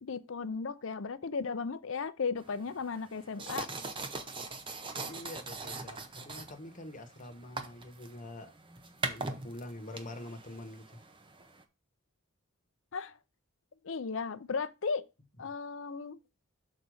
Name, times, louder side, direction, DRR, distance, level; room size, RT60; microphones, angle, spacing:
voice 1, 0.0-3.7 12.9-13.1 13.8-15.0 15.4-16.2, left 5 dB, 60° left, 0.5 m, -35 dB
sound 1, 2.4-11.6, right 3 dB, 20° right, 0.7 m, -42 dB
voice 2, 4.9-8.5 9.0-11.0, left 1 dB, 35° left, 1.1 m, -45 dB
6.3 x 4.1 x 6.3 m
head